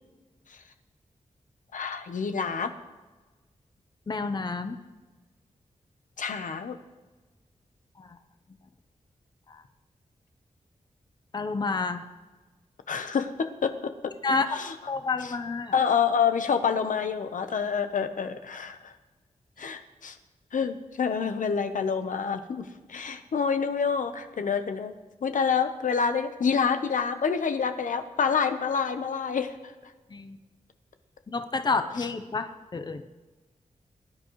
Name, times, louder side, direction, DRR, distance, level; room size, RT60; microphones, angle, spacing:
voice 1, 1.7-2.7 6.2-6.8 12.9-13.7 14.5-14.7 15.2-15.3 15.7-18.9 19.6-20.2 20.5-24.9 25.2-29.7, left 6 dB, 80° left, 8 dB, 0.9 m, -27 dB
voice 2, 4.1-4.8 8.0-8.1 9.5-9.6 11.3-12.0 14.2-14.5 14.9-15.7 19.6-19.7 30.1-30.4 31.3-33.0, left 4 dB, 35° left, 8 dB, 0.7 m, -29 dB
21.5 x 10.5 x 3.1 m, 1.3 s
wide cardioid pair, 155°, 13 cm